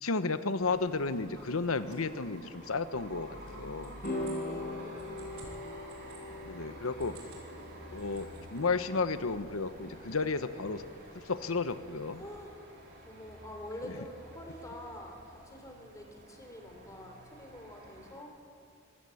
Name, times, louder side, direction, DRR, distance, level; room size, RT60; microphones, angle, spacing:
voice 1, 0.0-3.9 6.4-7.2 7.9-10.8 11.1-12.2 13.8-13.9, left 4 dB, 90° left, 11 dB, 1.1 m, -33 dB
sound 1, 0.6-18.2, right 1 dB, 55° right, 3.9 m, -51 dB
voice 2, 1.4-1.8 3.3-5.1 12.2-12.5 13.0-18.3, left 1 dB, 15° left, 2 dB, 3.5 m, -47 dB
sound 2, 3.4-6.2 6.8-7.5 7.8-8.6, right 8 dB, 70° right, 5.4 m, -56 dB
sound 3, 4.0-12.5, left 1 dB, 45° left, 5.3 m, -43 dB
25.0 x 15.5 x 8.5 m, 2.6 s
head